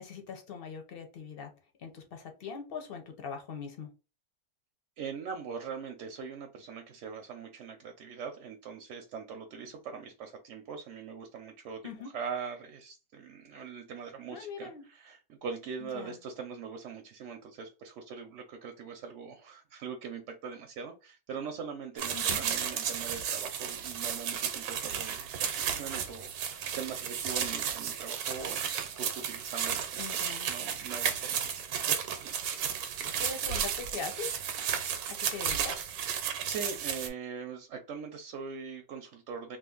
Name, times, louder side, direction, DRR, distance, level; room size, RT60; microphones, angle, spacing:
voice 1, 0.0-1.5 1.8-3.9 11.8-12.1 14.3-14.8 15.8-16.2 22.1-22.4 30.0-30.5 33.2-34.3 35.3-35.7, left 6 dB, 50° left, 0.7 m, -41 dB
voice 2, 5.0-32.6 36.4-39.6, right 6 dB, 65° right, 0.8 m, -42 dB
sound 1, 22.0-37.1, right 8 dB, 90° right, 1.1 m, -33 dB
2.5 x 2.4 x 3.7 m
omnidirectional pair, 1.6 m